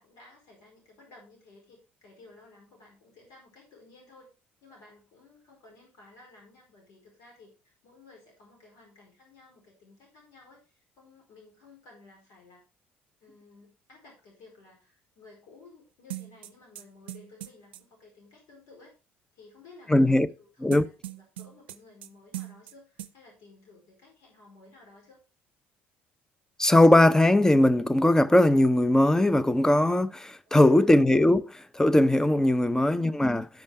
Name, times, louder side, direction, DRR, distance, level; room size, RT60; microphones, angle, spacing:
voice 1, 0.0-4.3 4.6-12.6 13.2-18.9 19.3-25.2 30.4-31.0, left 3 dB, 65° left, 4.5 m, -55 dB
sound 1, 16.1-17.8 20.7-22.1 22.3-22.7 23.0-23.1, right 15 dB, 85° right, 0.5 m, -39 dB
voice 2, 19.9-20.3 20.6-20.8 26.6-33.5, left 1 dB, 10° left, 0.7 m, -20 dB
12.0 x 5.4 x 4.4 m
hypercardioid pair, 55°, 6 cm